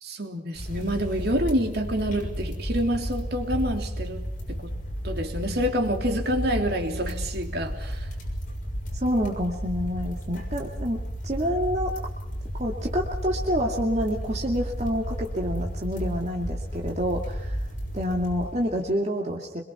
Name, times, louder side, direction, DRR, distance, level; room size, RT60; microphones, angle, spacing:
voice 1, 0.0-4.2 4.5-4.8 5.0-8.1, equal, 60° right, 4 dB, 3.3 m, -27 dB
sound 1, 0.5-18.9, equal, 45° left, 6.7 m, -33 dB
voice 2, 9.0-11.9 12.6-17.6 17.9-19.6, equal, 35° right, 0 dB, 2.5 m, -28 dB
25.5 x 22.5 x 5.9 m, 0.81 s
head